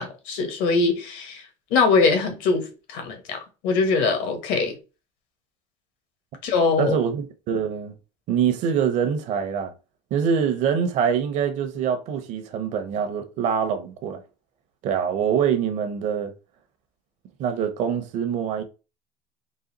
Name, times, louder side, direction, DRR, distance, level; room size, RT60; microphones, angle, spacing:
voice 1, 0.0-1.4 1.7-4.8 6.4-7.0, left 4 dB, 65° left, 1.3 m, -22 dB
voice 2, 6.8-7.9 8.3-9.7 10.1-14.2 14.8-16.3 17.4-18.6, right 7 dB, 50° right, 0.8 m, -24 dB
4.1 x 2.3 x 3.9 m
cardioid pair, 135°, 16 cm